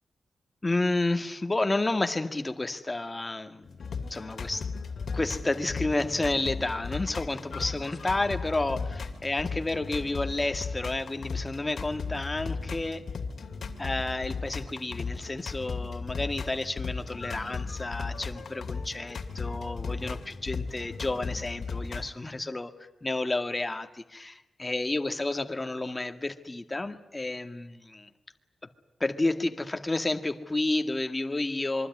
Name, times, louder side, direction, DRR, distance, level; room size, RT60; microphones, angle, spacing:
voice 1, 0.6-3.7 4.1-4.7 5.1-13.0 13.8-22.7 23.0-28.1 29.0-31.9, left 2 dB, 20° left, 7 dB, 1.9 m, -31 dB
sound 1, 3.6-22.1, left 4 dB, 65° left, 2.6 m, -36 dB
26.0 x 23.5 x 9.7 m, 0.91 s
wide cardioid pair, 110°, 0 cm